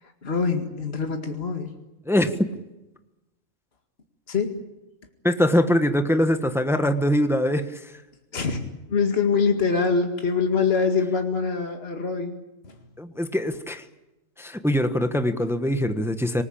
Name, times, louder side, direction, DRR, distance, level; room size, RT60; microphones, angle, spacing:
voice 1, 0.2-1.7 4.3-4.6 8.3-8.6 8.9-12.4 12.6-12.8, left 5 dB, 50° left, 4 dB, 2.3 m, -24 dB
voice 2, 5.2-7.9 13.0-13.8 14.4-16.4, equal, ahead, 8 dB, 1.3 m, -23 dB
26.0 x 19.5 x 8.7 m, 1.0 s
omnidirectional pair, 1.4 m